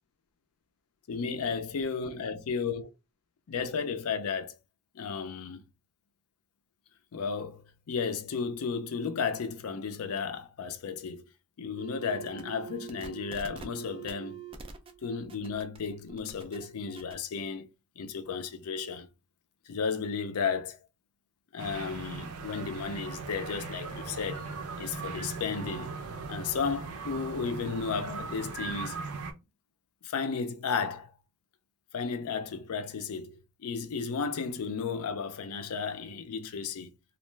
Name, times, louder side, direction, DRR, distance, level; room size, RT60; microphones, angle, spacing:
voice 1, 1.1-2.9 3.5-4.6 4.9-5.6 7.1-11.2 11.6-14.4 15.0-17.7 18.0-19.1 19.7-20.8 21.5-24.5 24.8-25.9 26.3-29.0 30.0-31.1 31.9-36.9, left 5 dB, 80° left, 0.5 m, -33 dB
sound 1, 11.8-17.1, right 7 dB, 25° right, 0.3 m, -45 dB
sound 2, 21.6-29.3, right 4 dB, 80° right, 0.6 m, -39 dB
2.3 x 2.2 x 3.1 m
head